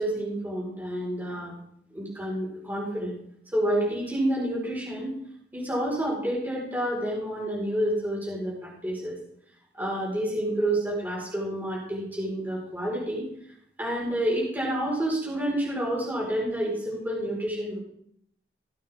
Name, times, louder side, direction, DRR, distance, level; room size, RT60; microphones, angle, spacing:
voice 1, 0.0-1.6 1.9-3.2 3.5-5.2 5.5-9.2 9.7-13.3 13.8-17.8, right 1 dB, 10° right, -5 dB, 4.7 m, -29 dB
18.0 x 9.0 x 3.6 m, 0.70 s
head